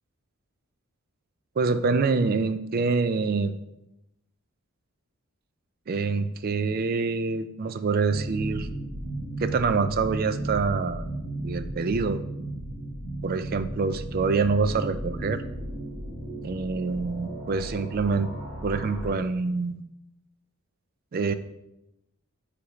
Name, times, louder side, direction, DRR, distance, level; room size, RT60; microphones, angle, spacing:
voice 1, 1.6-3.5 5.9-8.7 9.4-11.1 11.4-12.2 13.2-15.4 16.4-18.3 18.6-19.8 21.1-21.3, right 4 dB, 40° right, 11 dB, 0.3 m, -26 dB
sound 1, 8.1-19.1, right 1 dB, 5° right, 1.7 m, -35 dB
9.5 x 3.4 x 3.1 m, 0.88 s
head